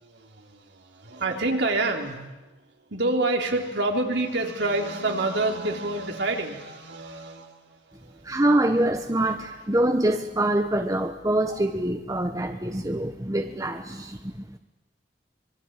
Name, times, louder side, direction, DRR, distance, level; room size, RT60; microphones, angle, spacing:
voice 1, 0.0-2.2 2.9-8.4, right 2 dB, 70° right, 2 dB, 3.6 m, -28 dB
voice 2, 8.2-14.4, right 1 dB, 20° right, 6 dB, 1.1 m, -25 dB
25.5 x 22.0 x 9.0 m, 1.1 s
head